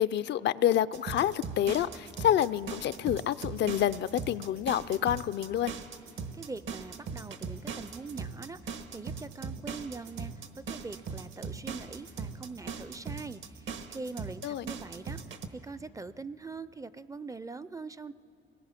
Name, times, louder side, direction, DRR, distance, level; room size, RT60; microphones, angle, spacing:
voice 1, 0.0-5.7 14.4-14.7, left 11 dB, 65° left, 15 dB, 0.4 m, -28 dB
sound 1, 0.9-15.5, right 5 dB, 75° right, 1.3 m, -39 dB
voice 2, 6.3-18.1, right 4 dB, 15° right, 16 dB, 0.4 m, -43 dB
27.0 x 19.5 x 5.8 m, 2.7 s
cardioid pair, 90°, 20 cm